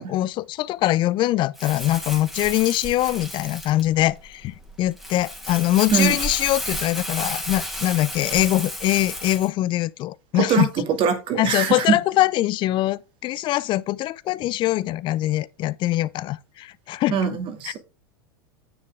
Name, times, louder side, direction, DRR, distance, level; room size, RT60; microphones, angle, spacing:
voice 1, 0.0-10.7 11.4-17.2, left 15 dB, 40° left, 0.5 m, -23 dB
Crumpling crinkling, 1.5-9.5, equal, ahead, 2.5 m, -32 dB
voice 2, 10.3-10.7 11.0-12.0 17.1-17.8, right 7 dB, 45° right, 2.3 m, -22 dB
9.5 x 6.5 x 3.5 m
hypercardioid pair, 100°, 12 cm